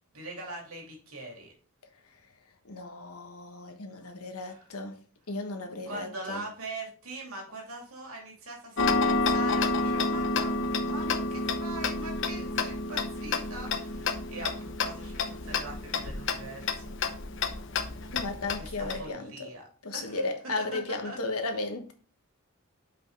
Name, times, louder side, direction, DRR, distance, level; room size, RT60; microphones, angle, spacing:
voice 1, 0.1-1.5 4.5-4.6 5.9-16.8 18.6-19.7 19.9-21.2, right 2 dB, 75° right, 2.7 m, -42 dB
voice 2, 2.6-5.0 5.3-6.4 18.1-19.5 19.8-21.9, left 3 dB, 80° left, 1.4 m, -35 dB
Tick-tock, 8.8-19.0, left 3 dB, 55° left, 0.8 m, -30 dB
5.7 x 5.3 x 4.6 m
head